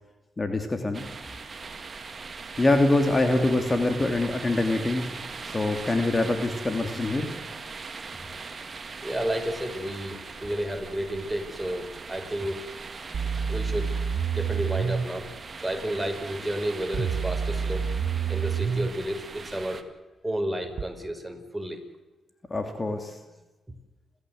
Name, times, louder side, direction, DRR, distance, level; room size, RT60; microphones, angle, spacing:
voice 1, 0.4-1.1 2.6-5.2 5.5-7.3 22.5-23.2, left 2 dB, 30° left, 6 dB, 2.9 m, -24 dB
sound 1, 0.9-19.8, right 4 dB, 45° right, 2.3 m, -40 dB
voice 2, 9.0-12.6 13.5-14.0 14.3-15.3 15.6-17.9 18.3-19.8 20.2-21.8, right 1 dB, 10° right, 5 dB, 5.1 m, -31 dB
sound 2, 13.1-15.1 16.9-18.9 20.8-20.9, right 6 dB, 60° right, 1.1 m, -28 dB
29.5 x 14.0 x 8.0 m, 1.2 s
supercardioid pair, 50°, 0 cm